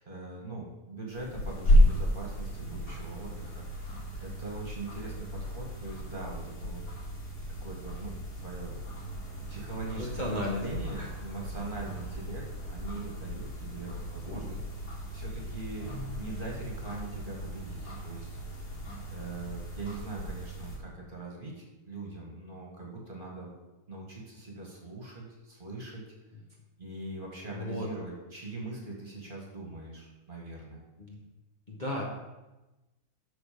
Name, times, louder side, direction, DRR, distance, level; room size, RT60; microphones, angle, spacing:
voice 1, 0.0-6.8 7.6-8.8 9.5-14.9 15.1-15.9 16.2-18.4 19.1-23.5 23.9-26.0 26.8-30.8, right 2 dB, 35° right, -1 dB, 1.8 m, -42 dB
sound 1, 1.1-20.8, equal, 80° left, 2.6 m, -33 dB
voice 2, 9.9-10.6 11.0-11.1 27.5-27.9 31.0-31.2 31.7-32.0, left 1 dB, 30° left, -3 dB, 1.3 m, -34 dB
12.5 x 4.4 x 5.1 m, 1.1 s
omnidirectional pair, 1.7 m